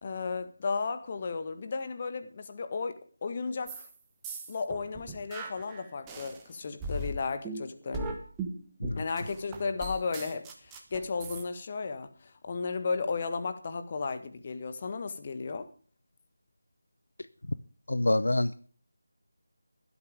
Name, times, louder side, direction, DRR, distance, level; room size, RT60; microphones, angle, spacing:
voice 1, 0.0-2.9 3.2-3.9 4.5-8.2 9.0-15.7, left 4 dB, 30° left, 1.5 m, -34 dB
sound 1, 3.7-3.9 4.2-6.4 6.8-11.4, right 2 dB, 10° right, 1.3 m, -38 dB
voice 2, 17.9-18.7, left 1 dB, 60° left, 0.7 m, -27 dB
17.0 x 12.5 x 3.5 m
figure-of-eight pair, 160°, 0 cm